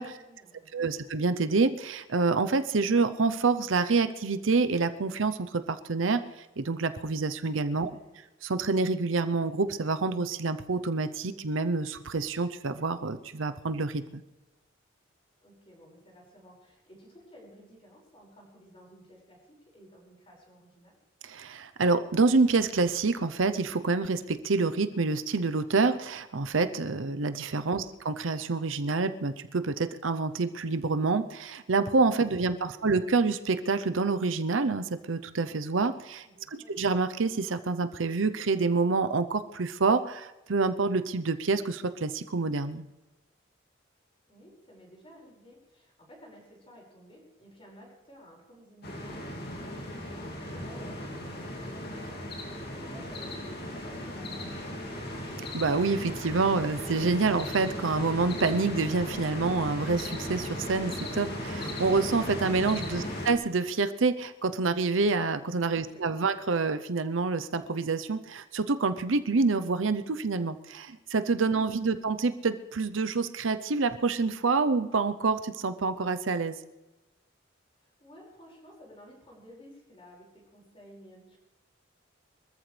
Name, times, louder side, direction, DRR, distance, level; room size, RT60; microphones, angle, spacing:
voice 1, 0.1-0.9 7.8-8.2 15.4-21.0 27.7-28.0 32.7-32.9 36.2-36.7 44.3-55.2 65.8-66.1 71.9-72.0 77.8-81.4, equal, 30° left, -3 dB, 5.6 m, -54 dB
voice 2, 0.7-6.2 6.6-7.9 8.4-14.2 21.2-36.3 36.5-42.9 55.5-76.6, right 4 dB, 75° right, 11 dB, 0.7 m, -27 dB
sound 1, 48.8-63.3, left 1 dB, 55° left, 2.6 m, -37 dB
24.0 x 14.0 x 3.3 m, 1.1 s
head